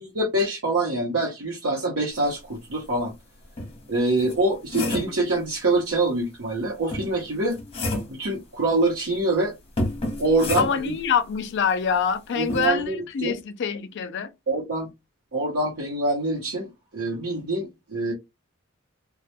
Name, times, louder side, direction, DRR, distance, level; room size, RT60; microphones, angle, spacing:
voice 1, 0.1-3.1 3.9-7.6 8.1-9.5 10.2-10.9 12.4-13.4 14.5-14.9 15.3-18.1, right 2 dB, 80° right, 0.8 m, -25 dB
sound 1, 2.9-3.0 3.6-5.2 6.9-8.2 9.8-11.0 12.5-12.7, left 1 dB, 30° left, 0.8 m, -30 dB
voice 2, 10.6-14.3, left 7 dB, 55° left, 0.4 m, -25 dB
2.2 x 2.1 x 2.8 m
head